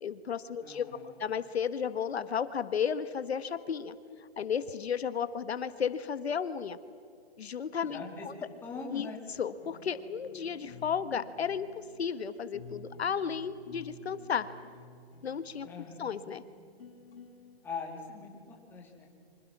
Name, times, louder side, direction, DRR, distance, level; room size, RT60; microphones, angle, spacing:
voice 1, 0.0-4.0 4.4-6.8 7.4-8.3 8.9-9.1 9.4-11.7 12.0-14.5 15.2-15.7 16.0-16.4, left 7 dB, 75° left, 12 dB, 1.4 m, -33 dB
voice 2, 0.6-1.2 7.8-8.3 8.6-9.2 15.6-16.1 17.6-19.1, left 4 dB, 5° left, -1 dB, 2.6 m, -42 dB
sound 1, 9.6-17.6, left 3 dB, 60° left, 6.0 m, -52 dB
29.0 x 25.0 x 6.1 m, 2.3 s
hypercardioid pair, 170°, 32 cm